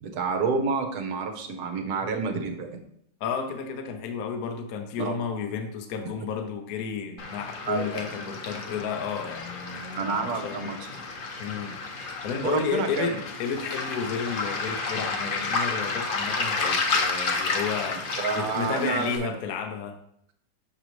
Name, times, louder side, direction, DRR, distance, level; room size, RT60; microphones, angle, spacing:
voice 1, 0.0-2.8 5.0-5.1 7.7-8.0 10.0-10.8 12.4-13.2 18.2-19.1, right 4 dB, 65° right, 4 dB, 1.3 m, -28 dB
voice 2, 3.2-10.7 11.4-20.0, left 6 dB, 65° left, 5 dB, 1.0 m, -32 dB
Waves surf, 7.2-19.2, left 4 dB, 85° left, 0.4 m, -31 dB
6.8 x 5.2 x 3.1 m, 0.71 s
omnidirectional pair, 1.9 m